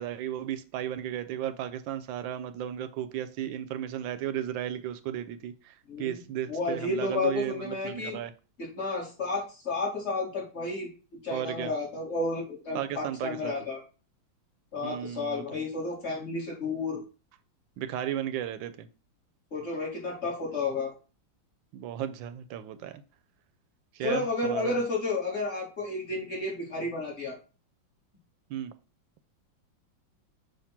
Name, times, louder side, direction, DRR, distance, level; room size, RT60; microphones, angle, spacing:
voice 1, 0.0-8.3 11.3-11.7 12.7-13.7 14.8-15.4 17.8-18.9 21.7-23.0 23.9-24.7 28.5-28.7, right 10 dB, 80° right, 1.3 m, -34 dB
voice 2, 5.9-6.2 6.5-8.1 8.6-10.9 11.2-13.8 14.7-17.0 19.5-20.9 24.0-27.4, left 3 dB, 35° left, 2.5 m, -31 dB
6.6 x 2.9 x 5.7 m
omnidirectional pair, 2.1 m